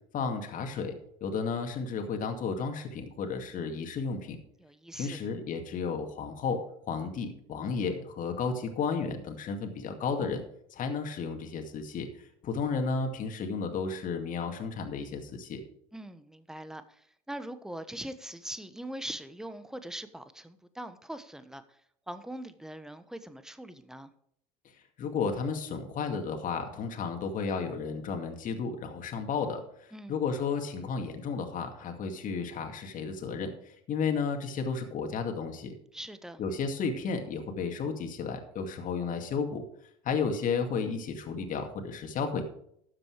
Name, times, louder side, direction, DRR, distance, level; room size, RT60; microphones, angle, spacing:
voice 1, 0.1-0.9 1.2-4.4 4.9-10.4 10.7-15.6 25.0-33.5 33.9-35.7 36.4-39.6 40.0-42.4, left 5 dB, 45° left, 4 dB, 2.3 m, -33 dB
voice 2, 4.6-5.2 15.9-21.6 22.1-24.1 29.9-30.2 35.9-36.4, right 1 dB, 5° right, 11 dB, 1.1 m, -42 dB
13.0 x 7.7 x 4.8 m, 0.68 s
hypercardioid pair, 85°, 19 cm